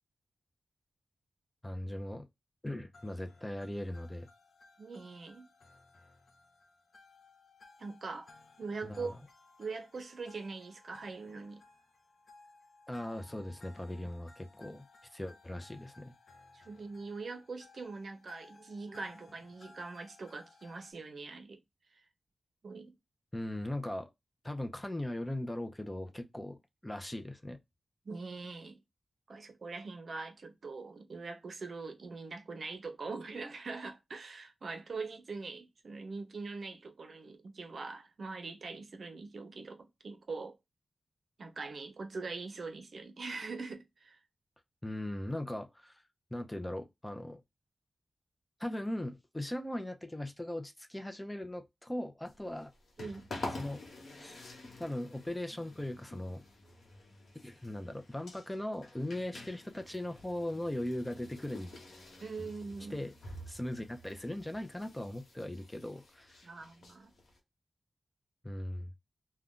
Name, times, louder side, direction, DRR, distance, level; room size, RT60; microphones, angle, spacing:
voice 1, 1.6-2.3 2.6-4.3 8.8-9.1 12.9-14.9 15.1-16.1 23.3-24.1 24.4-27.6 44.8-46.0 46.3-47.4 48.6-52.7 53.5-53.8 54.2-54.5 54.8-56.4 57.4-61.7 62.4-62.5 62.9-63.1 63.5-66.5 68.4-68.9, left 1 dB, 10° left, 0.5 m, -39 dB
sound 1, 2.9-20.9, left 3 dB, 65° left, 0.5 m, -60 dB
voice 2, 4.8-5.5 7.8-8.3 8.6-9.1 9.6-11.6 14.7-14.8 16.5-21.6 21.9-22.0 22.6-22.9 28.0-28.8 29.3-40.6 41.4-44.2 53.0-53.3 62.2-63.0 66.4-67.1, right 4 dB, 65° right, 0.6 m, -42 dB
sound 2, 52.2-67.4, left 2 dB, 85° left, 1.1 m, -49 dB
2.4 x 2.2 x 3.6 m
wide cardioid pair, 90°, 0 cm